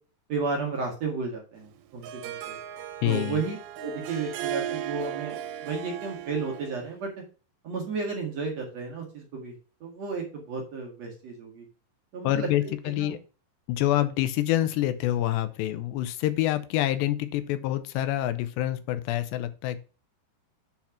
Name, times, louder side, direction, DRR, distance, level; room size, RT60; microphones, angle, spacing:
voice 1, 0.3-2.6 3.0-7.1 7.6-9.5 9.8-11.7 12.1-13.2, right 4 dB, 50° right, 0 dB, 2.4 m, -33 dB
Harp, 1.6-6.9, right 11 dB, 85° right, 3.0 m, -36 dB
voice 2, 3.0-3.4 12.2-13.2 13.7-19.8, left 13 dB, 90° left, 11 dB, 3.0 m, -27 dB
8.2 x 4.4 x 5.9 m, 0.35 s
omnidirectional pair, 4.9 m